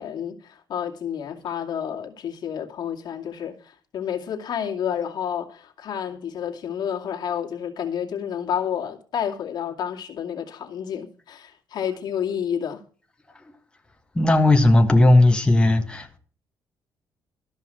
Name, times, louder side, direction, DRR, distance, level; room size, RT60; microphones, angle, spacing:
voice 1, 0.0-12.8, left 8 dB, 65° left, 2.4 m, -30 dB
voice 2, 14.1-16.2, left 1 dB, 10° left, 1.5 m, -16 dB
13.5 x 5.5 x 7.6 m
cardioid pair, 105°, 8 cm